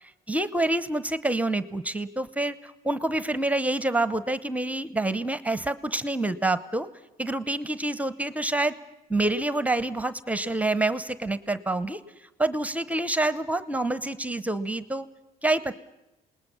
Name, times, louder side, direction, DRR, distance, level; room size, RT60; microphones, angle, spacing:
voice 1, 0.3-6.9 7.2-8.8 9.1-12.0 12.4-15.1 15.4-15.7, right 2 dB, 10° right, 15 dB, 0.8 m, -27 dB
27.5 x 19.5 x 7.0 m, 0.91 s
cardioid pair, 110°, 17 cm